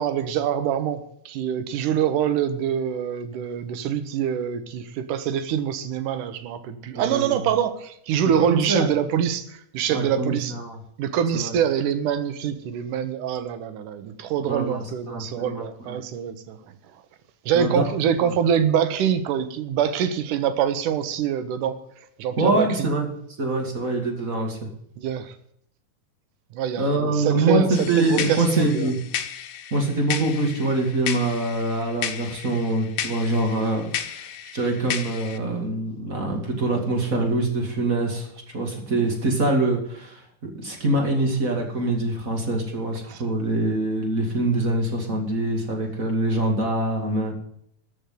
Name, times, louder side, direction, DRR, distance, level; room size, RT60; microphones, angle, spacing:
voice 1, 0.0-10.6 11.0-16.6 17.5-21.8 22.2-22.9 25.0-25.3 26.5-28.9 43.1-43.2, right 9 dB, 85° right, 11 dB, 2.6 m, -25 dB
voice 2, 6.9-7.4 8.4-8.9 9.9-10.8 11.3-11.5 14.4-16.0 17.5-17.9 18.2-18.3 22.4-23.1 23.4-24.6 26.8-29.0 29.7-47.3, right 2 dB, 30° right, 1 dB, 2.3 m, -24 dB
sound 1, 27.7-35.4, left 9 dB, 75° left, 2.2 m, -33 dB
13.5 x 6.4 x 9.3 m, 0.69 s
omnidirectional pair, 3.5 m